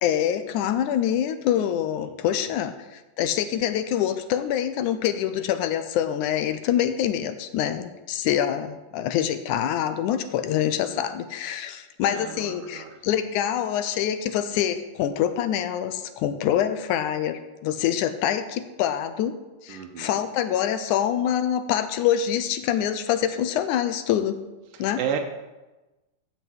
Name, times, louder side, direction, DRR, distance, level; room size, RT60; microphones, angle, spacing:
voice 1, 0.0-19.3 19.6-24.4 24.8-25.0, left 10 dB, 75° left, 10 dB, 2.1 m, -25 dB
voice 2, 2.0-2.5 10.8-11.0 12.0-13.0 19.7-20.2 24.7-25.2, right 8 dB, 90° right, 2 dB, 2.6 m, -34 dB
13.5 x 5.7 x 7.8 m, 1.1 s
omnidirectional pair, 3.7 m